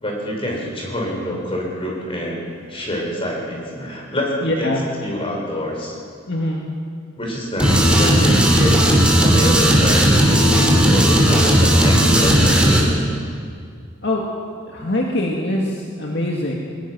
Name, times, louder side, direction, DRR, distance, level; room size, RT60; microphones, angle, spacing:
voice 1, 0.0-4.7 5.0-6.0 7.2-13.0, equal, 30° left, -2 dB, 5.4 m, -26 dB
voice 2, 4.4-4.8 6.3-6.6 14.0-14.2 14.7-16.5, left 1 dB, 60° left, -2 dB, 2.1 m, -23 dB
sound 1, 7.6-12.8, equal, 5° right, 3.2 m, -14 dB
21.0 x 20.0 x 6.2 m, 2.2 s
head